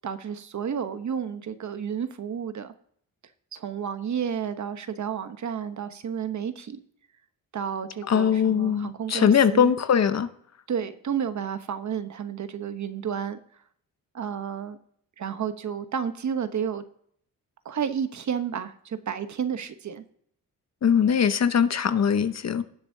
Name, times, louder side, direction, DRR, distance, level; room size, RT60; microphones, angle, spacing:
voice 1, 0.0-2.7 3.5-6.8 7.5-9.7 10.7-13.4 14.1-14.8 15.2-16.8 17.6-20.0, right 7 dB, 55° right, 10 dB, 1.0 m, -31 dB
voice 2, 8.1-10.3 20.8-22.6, left 7 dB, 50° left, 11 dB, 0.8 m, -21 dB
18.0 x 7.0 x 2.7 m, 0.64 s
cardioid pair, 100°, 35 cm